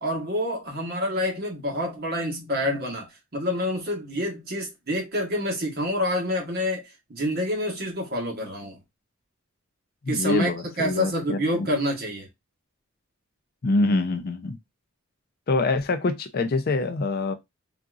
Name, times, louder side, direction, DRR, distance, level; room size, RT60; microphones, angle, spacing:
voice 1, 0.0-8.8 10.1-10.5 10.8-12.3, equal, 50° right, 1.2 m, -27 dB
voice 2, 10.0-11.7 13.6-14.6 15.5-17.3, left 3 dB, 50° left, 0.4 m, -25 dB
3.8 x 2.5 x 2.4 m
head